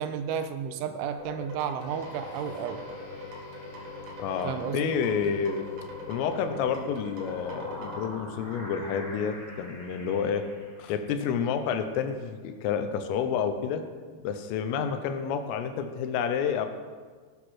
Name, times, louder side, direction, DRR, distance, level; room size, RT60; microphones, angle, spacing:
voice 1, 0.0-2.8 4.4-4.9, right 7 dB, 85° right, 9 dB, 3.1 m, -32 dB
sound 1, 1.2-8.0, equal, 40° right, 2.5 m, -43 dB
sound 2, 1.9-11.6, left 5 dB, 60° left, 5.0 m, -47 dB
voice 2, 4.2-5.7 6.1-10.5 10.8-13.8 14.2-16.7, left 7 dB, 85° left, 8 dB, 3.6 m, -29 dB
sound 3, 7.1-11.4, equal, 20° left, 4.5 m, -44 dB
18.5 x 8.2 x 6.3 m, 1.5 s
omnidirectional pair, 5.7 m